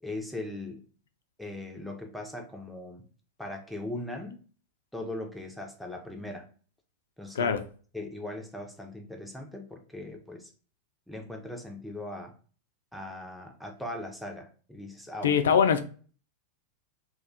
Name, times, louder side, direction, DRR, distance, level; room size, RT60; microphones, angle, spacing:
voice 1, 0.0-0.8 1.4-3.0 3.4-4.4 4.9-6.4 7.2-7.6 7.9-10.5 11.1-12.3 12.9-15.4, left 1 dB, ahead, 0.5 m, -39 dB
voice 2, 15.2-15.8, left 7 dB, 65° left, 0.3 m, -22 dB
2.4 x 2.2 x 3.5 m
figure-of-eight pair, 90°, 0 cm